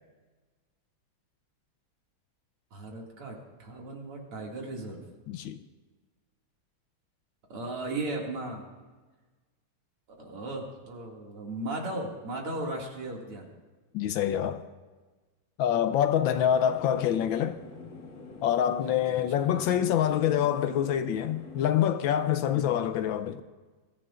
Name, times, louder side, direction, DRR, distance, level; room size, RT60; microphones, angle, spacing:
voice 1, 2.7-5.0 7.5-8.7 10.2-13.5 19.1-19.6 22.5-22.8, right 2 dB, 85° right, 3.2 m, -36 dB
voice 2, 5.3-5.6 13.9-14.6 15.6-17.6 18.4-23.4, left 10 dB, 75° left, 1.3 m, -26 dB
sound 1, 16.2-21.7, left 3 dB, 60° left, 2.4 m, -45 dB
23.5 x 14.0 x 2.5 m
omnidirectional pair, 2.4 m